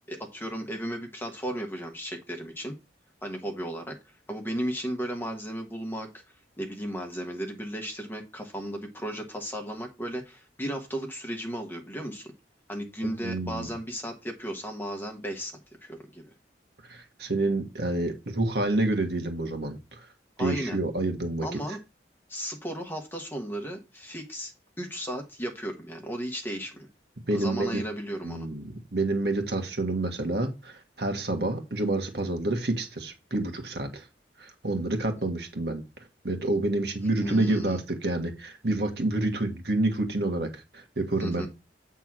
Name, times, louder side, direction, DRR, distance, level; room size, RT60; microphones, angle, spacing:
voice 1, 0.1-2.8 3.2-4.0 4.3-6.2 6.6-12.3 12.7-16.3 20.4-20.8 21.4-21.8 22.3-26.9 27.3-28.5 37.2-37.8 41.2-41.5, equal, 10° left, 3 dB, 1.3 m, -35 dB
voice 2, 13.0-13.7 16.8-20.1 20.4-21.6 27.3-27.8 28.2-34.1 34.4-35.8 36.2-41.5, right 2 dB, 60° right, 5 dB, 1.6 m, -28 dB
8.1 x 3.6 x 6.0 m, 0.25 s
head